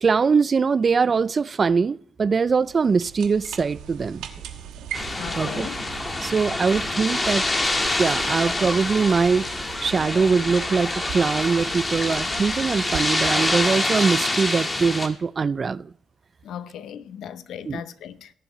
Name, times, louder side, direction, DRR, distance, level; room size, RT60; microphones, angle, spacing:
voice 1, 0.0-4.3 5.4-5.7 6.2-7.4 8.0-9.4 9.8-15.9 17.7-17.8, right 5 dB, 40° right, 0.4 m, -22 dB
sound 1, 2.5-14.3, right 9 dB, 90° right, 1.3 m, -40 dB
sound 2, 4.9-15.1, left 2 dB, 20° left, 1.6 m, -26 dB
voice 2, 5.1-5.8 16.4-18.3, left 9 dB, 75° left, 0.7 m, -37 dB
18.0 x 7.5 x 3.1 m
cardioid pair, 90°, 0 cm